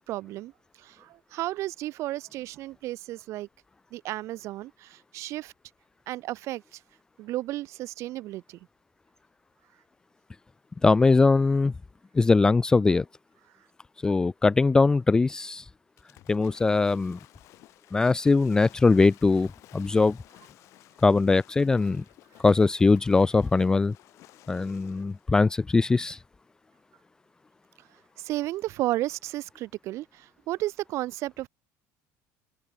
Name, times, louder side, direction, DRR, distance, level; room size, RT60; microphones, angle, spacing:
voice 1, 0.1-0.5 0.8-3.5 3.9-5.5 6.1-6.8 7.2-8.6 28.2-31.5, right 16 dB, 45° right, 1.6 m, -33 dB
voice 2, 10.8-11.7 12.1-13.0 14.0-15.6 16.3-17.2 17.9-20.2 21.0-22.0 22.4-23.9 24.5-26.2, left 3 dB, 10° left, 0.6 m, -21 dB
Waves surf / Splash splatter, 16.0-25.2, left 16 dB, 45° left, 6.5 m, -55 dB
cardioid pair, 180°, 7 cm